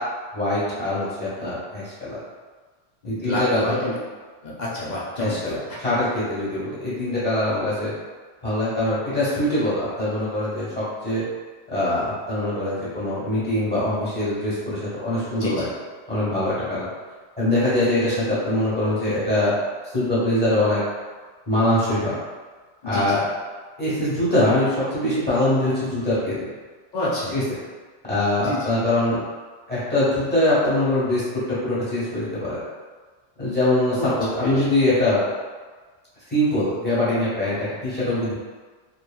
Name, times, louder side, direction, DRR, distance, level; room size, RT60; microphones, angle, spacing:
voice 1, 0.3-2.2 3.0-3.7 5.2-7.9 8.4-11.2 11.7-15.7 16.1-16.9 17.4-19.5 19.9-20.8 21.5-22.2 22.8-23.2 23.8-26.3 27.3-27.4 28.1-29.2 29.7-31.2 31.6-32.6 33.4-35.2 36.3-38.3, left 1 dB, 10° left, -11 dB, 1.1 m, -23 dB
voice 2, 3.0-4.0 4.4-5.5 15.4-15.7 22.8-23.2 26.9-27.4 28.4-28.7 34.0-34.1 34.4-34.6, left 1 dB, 60° left, -6 dB, 0.5 m, -28 dB
2.9 x 2.4 x 2.2 m, 1.4 s
omnidirectional pair, 1.2 m